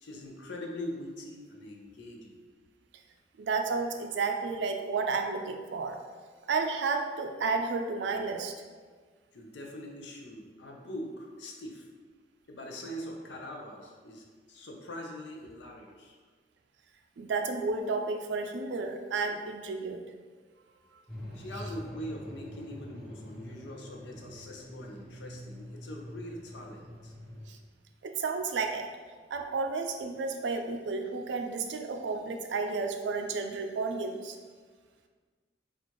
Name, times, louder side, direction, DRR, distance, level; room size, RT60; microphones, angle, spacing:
voice 1, 0.0-2.4 9.3-11.9 12.5-16.2 21.3-27.1, left 1 dB, 80° left, 1 dB, 0.6 m, -42 dB
voice 2, 3.4-6.0 6.5-8.5 17.2-20.0 27.5-27.6 28.0-28.9 29.3-34.4, right 4 dB, 80° right, 5 dB, 0.4 m, -32 dB
sound 1, 21.1-27.5, equal, 5° left, 0.9 m, -45 dB
4.4 x 2.4 x 2.9 m, 1.5 s
head